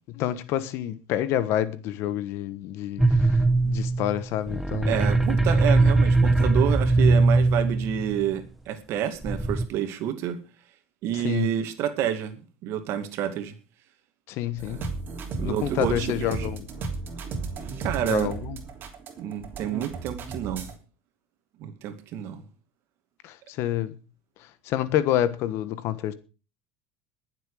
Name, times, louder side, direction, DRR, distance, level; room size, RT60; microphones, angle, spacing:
voice 1, 0.1-3.4 3.6-5.0 11.2-11.5 14.3-14.9 15.4-16.7 18.0-18.6 23.2-23.9 24.7-26.1, left 12 dB, 60° left, 1.3 m, -28 dB
sound 1, 3.0-8.2 9.2-9.7, right 2 dB, 5° right, 1.1 m, -21 dB
voice 2, 4.9-10.4 11.0-13.5 14.7-14.8 15.4-16.5 17.8-18.3 19.2-20.7 21.6-22.4, right 10 dB, 60° right, 2.3 m, -29 dB
sound 2, 14.6-20.8, right 4 dB, 40° right, 3.2 m, -34 dB
21.0 x 7.6 x 5.0 m
supercardioid pair, 110°, 5 cm